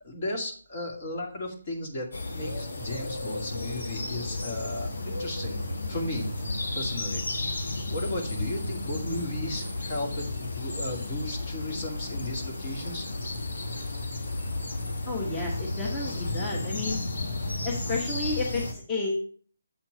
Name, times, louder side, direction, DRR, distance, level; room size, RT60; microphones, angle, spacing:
voice 1, 0.0-5.6 5.9-6.3 6.7-7.2 7.9-13.1, left 1 dB, 40° left, 1 dB, 2.3 m, -35 dB
sound 1, 2.1-18.7, left 2 dB, 65° left, 1.5 m, -33 dB
voice 2, 15.1-17.0 17.6-19.3, left 3 dB, 15° left, -2 dB, 1.2 m, -31 dB
7.8 x 4.4 x 5.2 m, 0.43 s
figure-of-eight pair, 150°, 0 cm